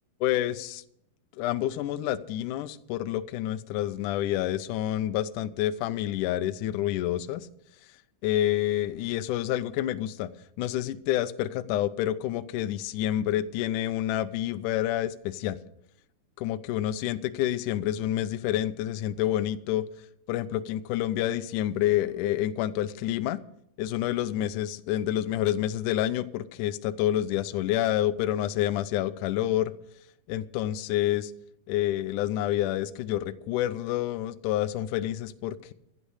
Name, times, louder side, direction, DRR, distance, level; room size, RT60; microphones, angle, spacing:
voice 1, 0.2-0.8 1.4-7.5 8.2-10.3 10.6-15.6 16.4-19.8 20.3-23.4 23.8-29.7 30.3-31.3 31.7-35.7, left 13 dB, 85° left, 11 dB, 1.8 m, -28 dB
15.5 x 8.5 x 6.4 m, 0.73 s
omnidirectional pair, 4.4 m